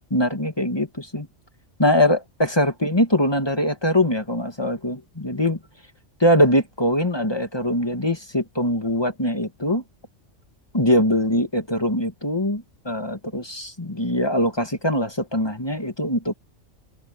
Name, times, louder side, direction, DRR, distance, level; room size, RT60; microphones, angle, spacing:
voice 1, 0.1-1.3 1.8-5.6 6.2-9.8 10.7-16.3, left 1 dB, 20° left, 2.0 m, -22 dB
omnidirectional pair, 1.3 m